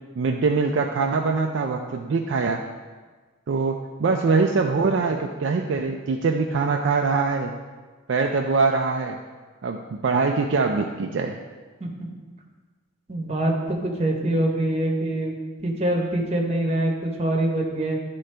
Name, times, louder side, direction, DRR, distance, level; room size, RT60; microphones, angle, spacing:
voice 1, 0.2-2.6 3.5-7.5 8.1-9.2 9.6-11.4, right 4 dB, 55° right, 3 dB, 0.3 m, -23 dB
voice 2, 13.1-15.4 15.6-18.0, right 1 dB, 30° right, -1 dB, 0.9 m, -24 dB
11.0 x 3.8 x 3.3 m, 1.4 s
head